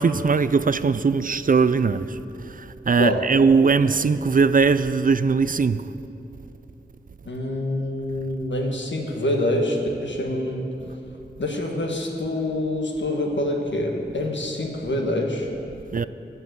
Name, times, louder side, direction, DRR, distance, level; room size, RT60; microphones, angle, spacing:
voice 1, 0.0-5.9 15.9-16.1, right 5 dB, 50° right, 0.4 m, -20 dB
voice 2, 7.2-10.7 11.4-15.5, left 1 dB, 90° left, 1.3 m, -26 dB
12.5 x 5.5 x 7.8 m
wide cardioid pair, 55°, 19 cm